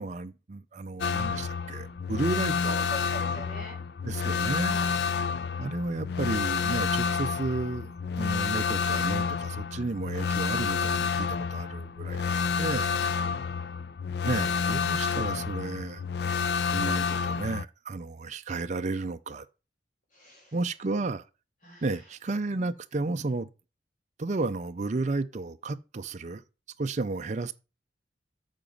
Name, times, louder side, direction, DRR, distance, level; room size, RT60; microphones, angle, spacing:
voice 1, 0.0-2.8 4.0-4.7 5.6-13.0 14.2-16.0 16.7-19.5 20.5-21.2 21.8-23.5 24.2-26.4 26.8-27.5, right 3 dB, 40° right, 0.5 m, -32 dB
sound 1, 1.0-17.7, left 6 dB, 60° left, 0.4 m, -29 dB
voice 2, 2.7-3.8 4.6-4.9 12.9-13.3 20.1-20.5 21.6-21.9, equal, 45° left, 4.4 m, -43 dB
9.0 x 5.9 x 5.3 m
head